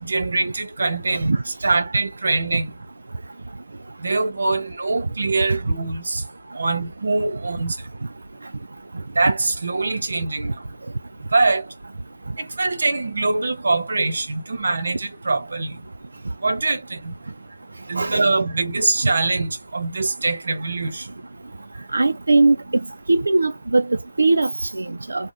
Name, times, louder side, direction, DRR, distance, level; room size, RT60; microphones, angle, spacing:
voice 1, 0.0-2.7 4.0-6.2 6.5-7.8 9.2-10.5 11.3-11.7 12.4-15.7 16.4-17.1 17.9-21.0, right 3 dB, 50° right, 0.9 m, -23 dB
voice 2, 18.0-18.3 19.0-19.1 21.9-22.8 23.1-25.3, right 3 dB, 75° right, 0.3 m, -20 dB
3.4 x 2.1 x 2.6 m
figure-of-eight pair, 180°, 0 cm